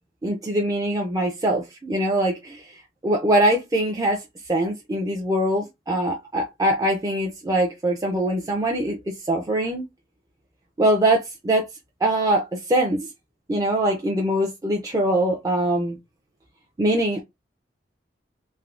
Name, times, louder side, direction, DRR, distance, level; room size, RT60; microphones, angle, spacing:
voice 1, 0.2-4.2 4.5-9.8 10.8-11.6 12.0-13.1 13.5-16.0 16.8-17.2, right 1 dB, 20° right, 0.4 m, -23 dB
3.3 x 2.0 x 2.4 m
head